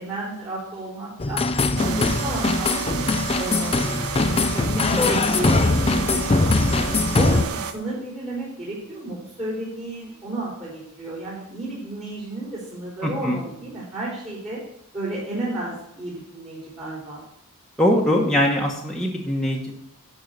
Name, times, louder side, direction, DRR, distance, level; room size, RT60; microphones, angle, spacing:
voice 1, 0.0-1.4 1.8-3.1 3.4-5.6 5.9-6.9 7.1-14.6 14.9-17.2, right 2 dB, 30° right, -9 dB, 3.8 m, -32 dB
sound 1, 1.2-7.4, left 3 dB, 25° left, 0.5 m, -21 dB
sound 2, 1.8-7.7, right 6 dB, 80° right, 1.0 m, -31 dB
voice 2, 13.0-13.4 17.8-19.7, left 1 dB, 5° left, -3 dB, 1.3 m, -22 dB
11.5 x 5.5 x 7.9 m, 0.73 s
head